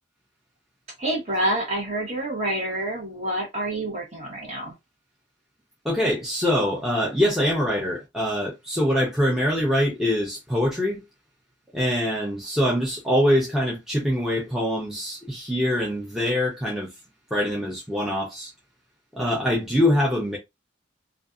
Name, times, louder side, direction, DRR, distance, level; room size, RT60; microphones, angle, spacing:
voice 1, 1.0-4.7, right 1 dB, 35° right, 1.0 m, -27 dB
voice 2, 5.8-11.0 11.7-16.9 17.3-18.5 19.1-20.4, equal, ahead, 0.5 m, -24 dB
2.5 x 2.3 x 2.4 m
head